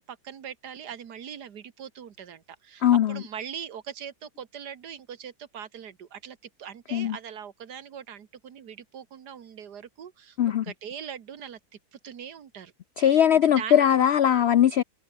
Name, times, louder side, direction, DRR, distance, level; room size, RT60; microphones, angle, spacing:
voice 1, 0.0-10.4 10.6-11.6 11.9-12.7 13.4-13.9, right 8 dB, 75° right, 1.9 m, -41 dB
voice 2, 2.8-3.2 6.9-7.2 10.4-10.6 13.0-14.8, left 10 dB, 80° left, 0.5 m, -20 dB
omnidirectional pair, 1.8 m